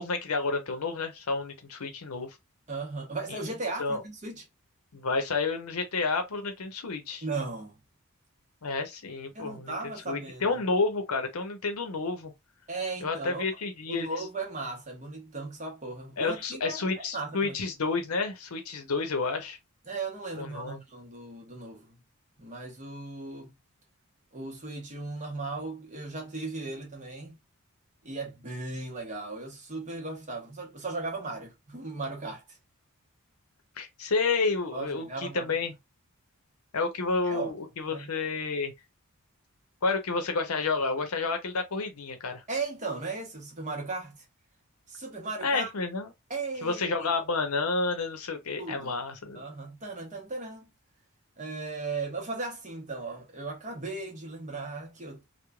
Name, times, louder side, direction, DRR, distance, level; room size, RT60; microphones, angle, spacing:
voice 1, 0.0-2.4 3.8-4.0 4.9-7.2 8.6-9.7 10.1-12.3 13.0-14.1 16.2-19.6 20.4-20.8 33.8-35.7 36.7-38.7 39.8-42.4 45.4-46.1 46.6-49.4, left 4 dB, 80° left, 0.7 m, -30 dB
voice 2, 2.7-4.5 7.2-7.8 9.3-10.6 12.7-13.5 13.9-16.8 17.1-17.6 19.9-22.0 22.4-23.6 24.3-27.4 28.0-32.5 34.7-35.5 37.2-37.5 37.9-38.1 42.5-44.2 44.9-45.7 46.3-47.1 48.6-49.0 49.3-50.7 51.4-55.2, right 3 dB, 35° right, 0.9 m, -37 dB
3.1 x 2.2 x 2.2 m
head